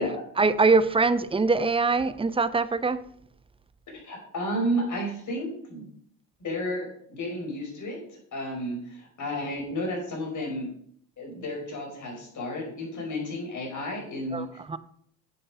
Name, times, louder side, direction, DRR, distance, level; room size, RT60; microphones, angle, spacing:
voice 1, 0.4-3.0 14.3-14.8, right 4 dB, 15° right, 0.7 m, -23 dB
voice 2, 3.9-5.9 6.4-10.7 11.2-14.5, equal, 45° left, 5.4 m, -32 dB
10.0 x 7.7 x 5.1 m
supercardioid pair, 80°, 42 cm